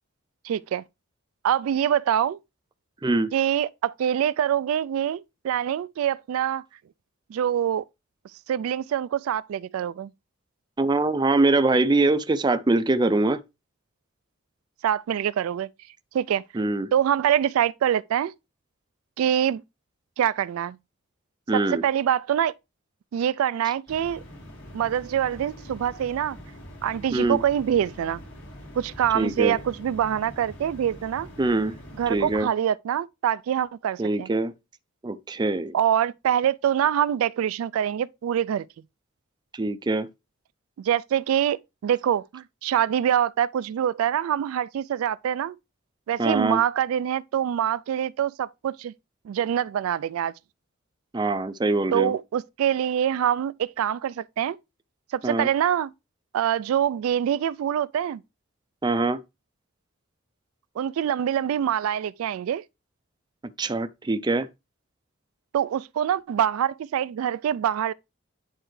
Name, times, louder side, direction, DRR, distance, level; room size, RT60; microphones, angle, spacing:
voice 1, 0.4-0.8 1.4-2.4 3.3-6.6 7.3-7.8 8.5-10.1 14.8-15.7 16.1-16.4 16.9-18.3 19.2-19.6 20.2-20.8 21.5-22.5 23.1-24.2 24.7-26.4 26.8-28.2 28.8-31.3 32.0-34.3 35.7-38.7 40.8-45.6 46.1-48.9 49.2-50.3 51.9-54.6 55.1-55.9 56.3-58.2 60.8-62.6 65.5-67.9, right 9 dB, 90° right, 0.3 m, -25 dB
voice 2, 3.0-3.3 10.8-13.4 16.6-16.9 21.5-21.8 27.1-27.4 29.1-29.6 31.4-31.8 32.1-32.5 34.0-34.5 35.0-35.7 39.5-40.1 46.2-46.6 51.1-52.1 55.2-55.5 58.8-59.2 63.6-64.5, right 2 dB, 20° right, 0.4 m, -23 dB
sound 1, 23.9-32.4, equal, 60° left, 2.1 m, -44 dB
10.0 x 4.4 x 3.1 m
head